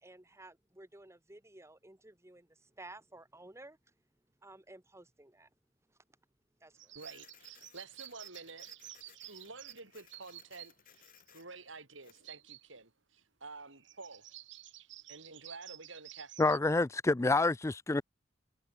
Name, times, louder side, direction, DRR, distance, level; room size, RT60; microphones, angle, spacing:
voice 1, 0.0-3.9 4.4-5.5 5.9-6.0 6.6-6.9, right 2 dB, 15° right, 1.7 m, -54 dB
sound 1, 6.8-10.7 11.0-11.5 12.2-12.8 13.2-13.3 13.5-16.6, right 14 dB, 70° right, 3.0 m, -52 dB
voice 2, 6.9-8.7 8.9-14.3 15.1-16.6, right 3 dB, 85° right, 6.1 m, -50 dB
Printer, 7.0-12.3, left 9 dB, 50° left, 7.6 m, -62 dB
voice 3, 16.4-18.0, left 3 dB, 15° left, 0.4 m, -28 dB
head